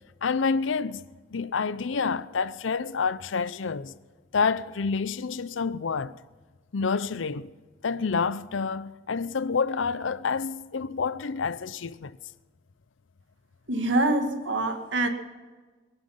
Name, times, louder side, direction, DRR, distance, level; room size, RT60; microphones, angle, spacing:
voice 1, 0.2-1.0 1.3-3.9 4.3-6.2 6.7-7.5 7.8-12.2, left 5 dB, 85° left, 0.6 m, -28 dB
voice 2, 13.7-15.1, right 2 dB, 70° right, 1.8 m, -25 dB
22.0 x 11.5 x 5.7 m
head